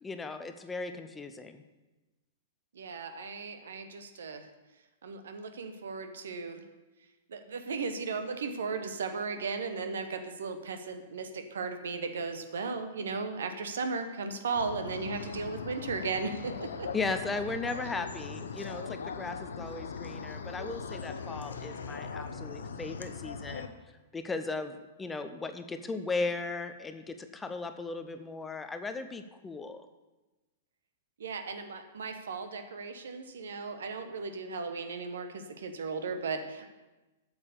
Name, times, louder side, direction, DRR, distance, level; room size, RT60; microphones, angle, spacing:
voice 1, 0.0-1.6 16.9-23.7 24.1-29.9, left 3 dB, 10° left, 8 dB, 0.6 m, -37 dB
voice 2, 2.7-4.5 5.0-6.6 7.3-16.9 31.2-36.7, right 4 dB, 65° right, 8 dB, 1.0 m, -36 dB
sound 1, 14.5-23.7, left 5 dB, 65° left, 0.7 m, -40 dB
8.4 x 7.2 x 6.6 m, 1.1 s
figure-of-eight pair, 105°, 0 cm